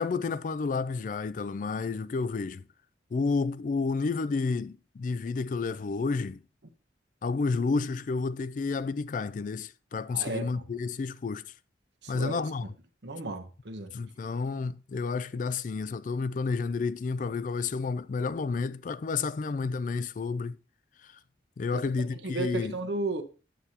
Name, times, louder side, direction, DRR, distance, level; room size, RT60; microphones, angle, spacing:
voice 1, 0.0-2.6 3.1-6.4 7.2-11.4 12.1-12.7 13.9-20.6 21.0-21.1 21.6-22.8, left 4 dB, 45° left, 0.3 m, -30 dB
voice 2, 10.1-10.6 12.0-12.5 13.0-13.9 21.7-21.8 22.1-23.2, right 3 dB, 70° right, 1.1 m, -34 dB
9.1 x 8.2 x 2.8 m
head